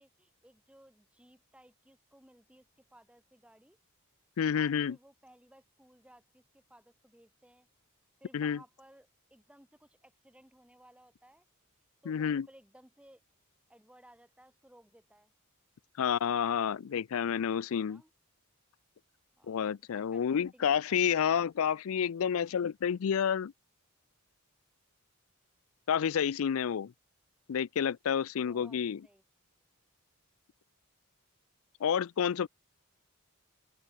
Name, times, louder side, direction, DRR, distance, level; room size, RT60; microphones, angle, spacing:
voice 1, 0.0-3.8 4.5-7.7 8.2-11.4 12.0-13.2 13.7-15.3 17.8-18.1 19.4-19.6 19.9-21.2 28.4-29.2 32.4-32.5, right 1 dB, 5° right, 3.4 m, -60 dB
voice 2, 4.4-5.0 8.3-8.6 12.1-12.5 16.0-18.0 19.5-23.5 25.9-26.9 27.5-29.0 31.8-32.5, left 8 dB, 65° left, 0.4 m, -29 dB
open air
head